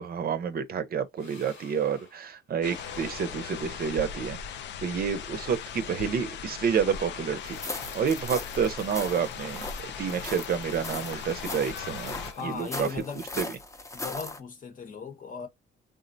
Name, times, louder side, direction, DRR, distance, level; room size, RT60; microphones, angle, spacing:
voice 1, 0.0-4.4 4.8-7.6 7.9-12.9 13.4-13.5, right 7 dB, 50° right, 0.5 m, -29 dB
sound 1, 1.2-2.2 2.6-4.6 5.1-6.3 6.8-8.8 9.3-10.7 11.2-13.3, left 4 dB, 85° left, 1.6 m, -50 dB
sound 2, 2.6-12.3, left 7 dB, 65° left, 0.4 m, -39 dB
sound 3, 7.5-14.4, left 2 dB, 15° left, 0.5 m, -39 dB
voice 2, 12.4-13.2 13.9-15.5, left 5 dB, 40° left, 0.9 m, -37 dB
3.6 x 2.0 x 2.6 m
cardioid pair, 90°, 20 cm